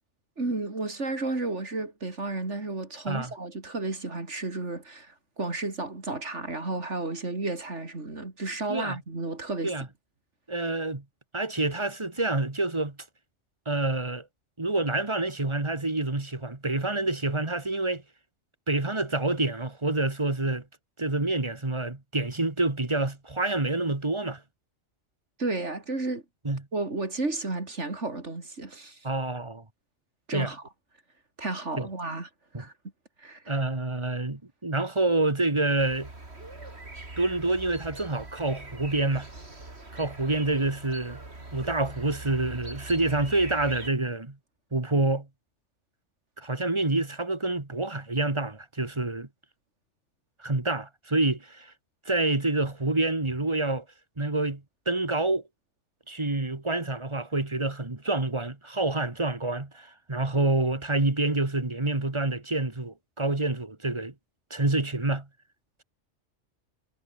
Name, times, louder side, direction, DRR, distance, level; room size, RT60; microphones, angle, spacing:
voice 1, 0.4-9.7 25.4-26.2 26.7-29.0 30.3-30.6 31.4-32.3 32.6-32.7 33.2-33.5, right 2 dB, 80° right, 4.1 m, -32 dB
voice 2, 10.5-11.0 11.3-13.0 13.7-14.2 14.6-18.0 18.7-20.6 21.0-24.4 26.4-26.6 29.0-29.6 30.3-30.5 31.8-31.9 32.5-32.6 33.5-36.1 37.2-39.3 39.9-41.2 41.5-44.4 44.7-45.3 46.4-49.3 50.4-51.7 52.1-53.8 54.2-55.4 56.1-64.1 64.5-65.3, right 2 dB, 25° right, 2.0 m, -27 dB
sound 1, 35.8-43.9, right 2 dB, 65° right, 4.5 m, -42 dB
omnidirectional pair, 1.2 m